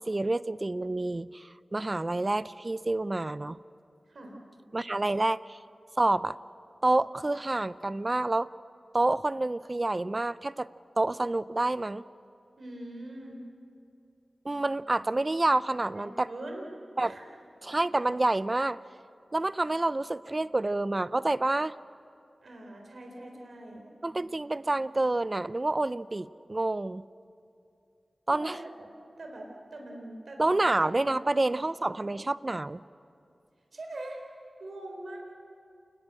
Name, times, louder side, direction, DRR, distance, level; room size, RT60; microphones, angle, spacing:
voice 1, 0.0-3.6 4.7-5.6 6.0-6.4 6.8-8.5 8.9-10.7 11.0-12.0 14.4-16.3 17.0-17.2 17.6-18.8 19.3-21.7 24.0-27.0 28.3-28.6 30.4-32.8, right 2 dB, 30° right, 16 dB, 0.5 m, -28 dB
voice 2, 4.1-4.4 12.6-13.4 15.9-16.7 17.0-17.2 22.4-23.8 28.3-28.9 29.2-30.6 31.2-31.3 32.0-32.1 33.7-34.2 34.6-35.2, right 1 dB, 70° right, 1 dB, 4.1 m, -42 dB
28.0 x 20.5 x 7.7 m, 2.5 s
wide cardioid pair, 90°, 0 cm